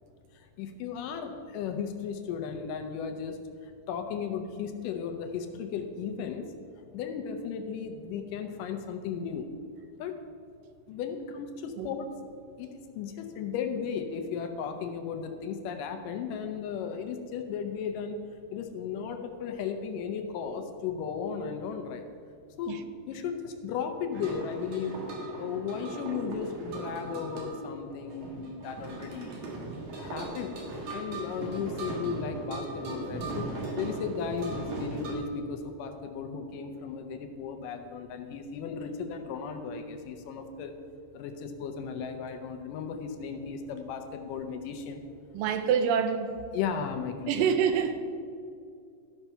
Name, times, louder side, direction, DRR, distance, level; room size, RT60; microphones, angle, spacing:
voice 1, 0.3-6.5 6.9-9.5 10.0-10.2 10.9-12.1 12.6-12.7 13.0-18.2 18.5-22.0 22.6-22.8 23.1-25.0 25.4-29.3 30.0-30.5 30.9-33.5 33.8-40.7 41.1-45.0 46.5-47.4, left 6 dB, 80° left, 6 dB, 2.2 m, -35 dB
sound 1, 24.1-35.1, right 2 dB, 60° right, 2.9 m, -38 dB
voice 2, 45.4-46.3 47.3-48.0, right 7 dB, 80° right, 9 dB, 2.3 m, -26 dB
13.5 x 5.9 x 5.5 m, 2.4 s
omnidirectional pair, 4.0 m